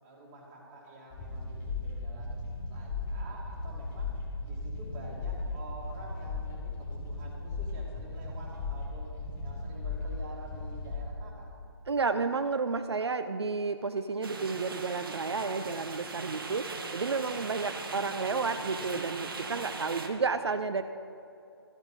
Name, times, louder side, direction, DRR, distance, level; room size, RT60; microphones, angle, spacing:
voice 1, 0.0-4.1 4.4-9.1 9.4-11.5 19.7-20.2, right 1 dB, 20° right, -4 dB, 2.5 m, -48 dB
sound 1, 1.1-11.0, left 3 dB, 15° left, 1.9 m, -37 dB
voice 2, 11.9-20.8, right 4 dB, 75° right, 9 dB, 0.5 m, -31 dB
sound 2, 14.2-20.1, right 4 dB, 55° right, 1.3 m, -40 dB
13.5 x 8.0 x 5.4 m, 2.7 s
figure-of-eight pair, 150°, 14 cm